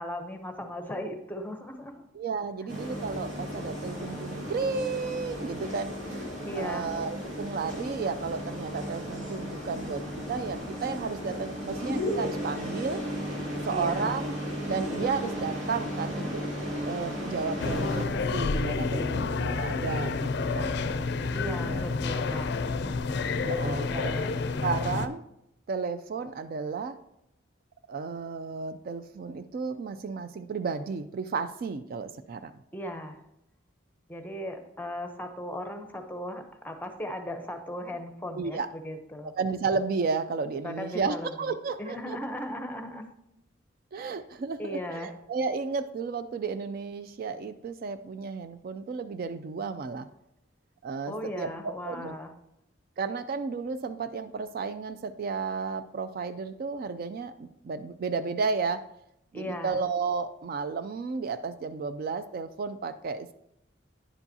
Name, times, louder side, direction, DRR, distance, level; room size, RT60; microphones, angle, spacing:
voice 1, 0.0-2.1 6.5-6.9 13.7-14.1 21.3-22.9 23.5-24.4 32.7-33.2 34.1-39.3 40.6-43.1 44.6-45.1 51.1-52.3 59.3-59.8, left 1 dB, 10° left, 6 dB, 0.7 m, -37 dB
voice 2, 2.1-10.0 10.3-13.0 13.3-14.4 14.7-16.4 16.8-20.9 21.6-21.8 23.4-24.1 24.6-25.2 25.7-27.0 27.9-32.5 38.4-38.7 39.4-42.2 43.9-50.1 50.8-52.2 53.0-58.8 59.3-63.3, right 4 dB, 50° right, 11 dB, 0.3 m, -33 dB
sound 1, 2.7-18.0, equal, 80° right, 2.2 m, -35 dB
sound 2, 17.6-25.1, left 4 dB, 60° left, 0.4 m, -29 dB
9.8 x 7.1 x 2.7 m, 0.81 s
head